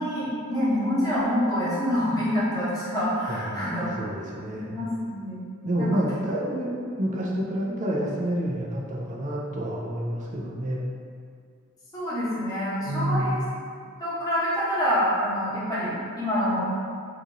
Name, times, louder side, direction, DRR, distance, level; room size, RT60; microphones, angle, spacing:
voice 1, 0.0-3.9 4.5-5.4 5.8-6.2 11.9-13.4 14.0-16.6, equal, 15° left, -11 dB, 1.0 m, -26 dB
voice 2, 3.3-4.8 5.6-6.7 7.0-10.9 12.9-13.5, right 1 dB, 35° right, -3 dB, 0.4 m, -28 dB
2.9 x 2.5 x 3.7 m, 2.2 s
head